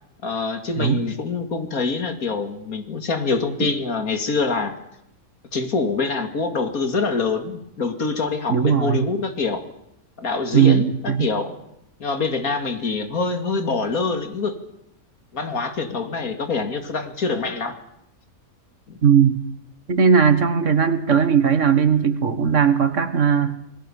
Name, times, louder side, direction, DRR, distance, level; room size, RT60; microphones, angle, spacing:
voice 1, 0.2-4.8 5.5-9.6 10.2-11.5 12.0-14.6 15.3-17.7 18.9-19.0, left 4 dB, 75° left, 8 dB, 2.8 m, -25 dB
voice 2, 8.5-9.1 10.5-11.3 19.0-19.4 19.9-23.6, right 7 dB, 55° right, 12 dB, 1.9 m, -18 dB
27.5 x 21.0 x 7.2 m, 0.79 s
omnidirectional pair, 1.5 m